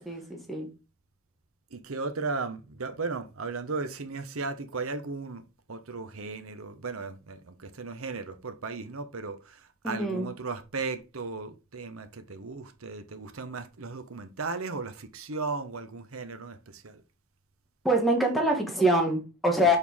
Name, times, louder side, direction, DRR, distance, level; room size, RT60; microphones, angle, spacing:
voice 1, 0.0-0.7 9.8-10.3 17.8-19.8, equal, ahead, 1.5 m, -25 dB
voice 2, 1.7-5.4 5.7-17.0, right 4 dB, 75° right, 1.0 m, -36 dB
6.6 x 4.6 x 3.6 m
head